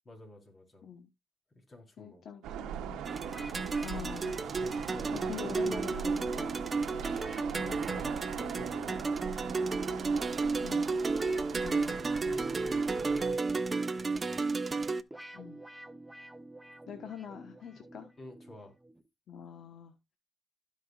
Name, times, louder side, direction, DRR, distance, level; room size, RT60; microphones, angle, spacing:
voice 1, 0.1-0.9 1.5-2.2 3.3-3.6 4.5-6.0 7.1-8.1 8.3-9.4 11.4-15.0 18.2-18.8, left 1 dB, 30° left, 4.0 m, -52 dB
voice 2, 2.0-3.0 3.8-4.4 5.1-6.6 7.6-8.1 10.6-10.9 11.6-12.1 15.3-15.6 16.9-18.1 19.3-19.9, left 8 dB, 65° left, 1.1 m, -45 dB
sound 1, 2.4-13.3, right 9 dB, 90° right, 0.9 m, -41 dB
sound 2, 3.1-19.1, right 1 dB, 5° right, 0.9 m, -51 dB
sound 3, 3.1-15.0, right 3 dB, 30° right, 0.6 m, -32 dB
16.0 x 5.4 x 2.4 m
cardioid pair, 90°, 0 cm